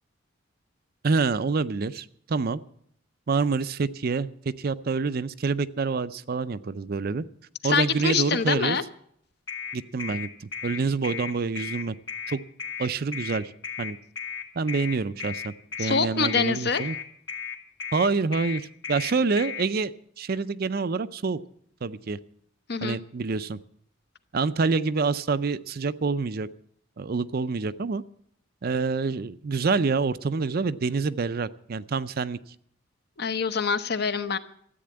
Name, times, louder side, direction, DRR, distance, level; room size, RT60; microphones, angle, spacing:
voice 1, 1.0-2.6 3.3-7.2 7.6-8.8 9.7-11.9 12.3-12.4 12.8-13.5 13.8-14.0 14.6-17.0 17.9-21.4 21.8-22.2 22.8-23.6 24.3-26.5 27.0-28.0 28.6-32.4, right 4 dB, 50° right, 14 dB, 0.5 m, -27 dB
voice 2, 7.6-8.8 15.8-16.8 22.7-23.0 33.2-34.4, left 5 dB, 55° left, 10 dB, 0.9 m, -25 dB
sound 1, 9.5-19.7, left 7 dB, 75° left, 2.0 m, -35 dB
14.0 x 8.6 x 8.7 m, 0.67 s
head